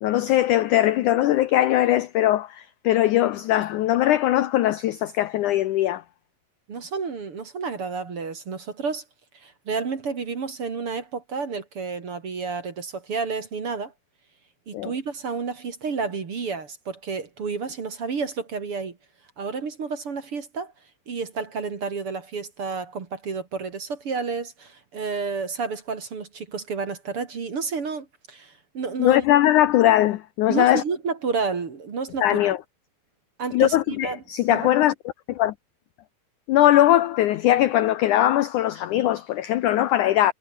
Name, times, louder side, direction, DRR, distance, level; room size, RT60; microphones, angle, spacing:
voice 1, 0.0-6.0 14.7-14.9 29.0-30.8 32.2-32.6 33.5-34.9 35.3-35.5 36.5-40.3, left 13 dB, 80° left, 1.8 m, -20 dB
voice 2, 6.7-9.0 9.3-13.9 14.7-19.0 19.4-20.7 21.1-29.2 30.5-32.5 33.4-34.2 34.5-34.7, right 5 dB, 40° right, 2.8 m, -30 dB
omnidirectional pair, 4.6 m